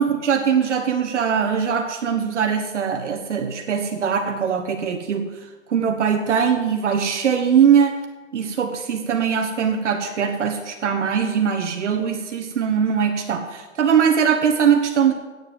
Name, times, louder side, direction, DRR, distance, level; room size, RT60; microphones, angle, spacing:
voice 1, 0.0-5.3 5.7-8.0 8.3-15.1, right 7 dB, 65° right, 5 dB, 1.3 m, -21 dB
9.2 x 7.7 x 7.7 m, 1.2 s
hypercardioid pair, 165°, 39 cm